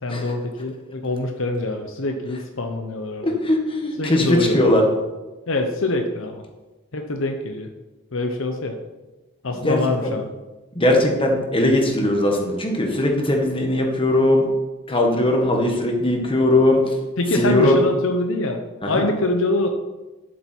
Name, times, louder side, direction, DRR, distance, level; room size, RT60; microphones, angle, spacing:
voice 1, 0.0-3.3 4.0-4.9 5.5-6.4 6.9-7.7 8.1-8.8 9.4-10.4 17.2-19.7, left 2 dB, 65° left, 5 dB, 0.9 m, -25 dB
voice 2, 3.2-4.8 9.6-10.1 10.7-14.5 14.9-17.0 17.3-17.8 18.8-19.1, left 1 dB, 25° left, 1 dB, 1.7 m, -19 dB
11.5 x 7.3 x 4.6 m, 1.1 s
head